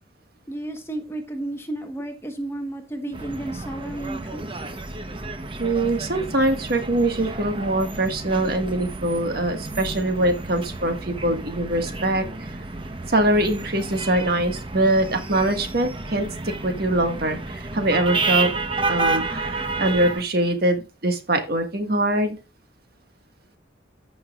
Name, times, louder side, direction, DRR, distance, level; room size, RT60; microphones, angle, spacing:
voice 1, 0.5-4.4, right 1 dB, 15° left, 5 dB, 1.2 m, -32 dB
sound 1, 3.1-20.2, right 3 dB, 25° right, 0.9 m, -31 dB
voice 2, 5.6-12.5 13.1-18.5 18.9-22.4, right 1 dB, 55° right, 5 dB, 1.7 m, -23 dB
14.5 x 6.1 x 2.4 m, 0.28 s
head